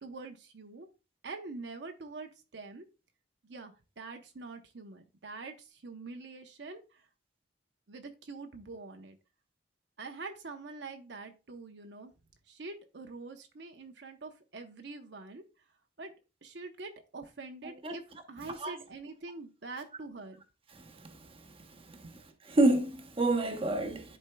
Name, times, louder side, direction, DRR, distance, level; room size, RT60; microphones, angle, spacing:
voice 1, 0.0-0.9 1.2-2.9 3.4-7.0 7.9-9.2 10.0-12.1 12.5-15.4 16.0-16.1 16.4-18.0 18.3-20.4 22.0-22.1, right 3 dB, 65° right, 0.8 m, -45 dB
voice 2, 20.7-21.2 22.4-24.2, right 2 dB, 30° right, 0.9 m, -28 dB
11.0 x 4.4 x 2.2 m
head